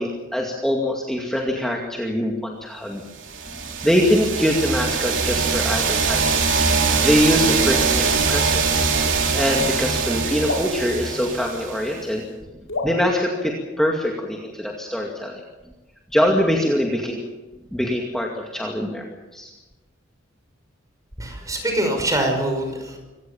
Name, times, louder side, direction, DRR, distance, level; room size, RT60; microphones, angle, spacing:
voice 1, 0.0-3.0 3.8-6.3 6.7-12.2 12.8-15.4 16.1-17.2 17.7-19.5, equal, ahead, 0 dB, 2.2 m, -23 dB
sound 1, 3.3-12.0, right 5 dB, 65° right, 3.4 m, -22 dB
sound 2, 10.4-12.1 12.7-14.4, left 2 dB, 75° left, 4.8 m, -33 dB
voice 2, 21.2-23.0, right 1 dB, 15° right, 4 dB, 5.8 m, -24 dB
26.0 x 17.5 x 7.2 m, 1.1 s
head